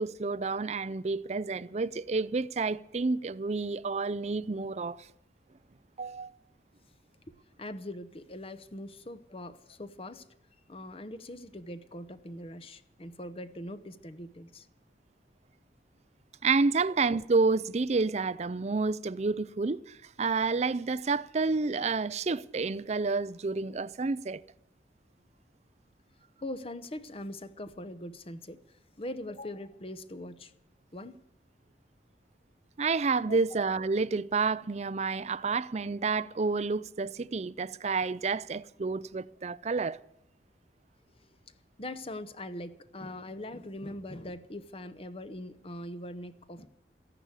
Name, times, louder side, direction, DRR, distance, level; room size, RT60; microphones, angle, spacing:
voice 1, 0.0-5.1 6.0-6.3 16.4-24.4 32.8-40.0, right 4 dB, 40° right, 0.5 m, -29 dB
voice 2, 7.3-10.4 10.7-14.7 26.4-28.6 29.0-30.5 30.9-31.2 33.3-33.4 41.8-46.7, left 1 dB, 35° left, 0.9 m, -42 dB
14.5 x 11.0 x 8.2 m
head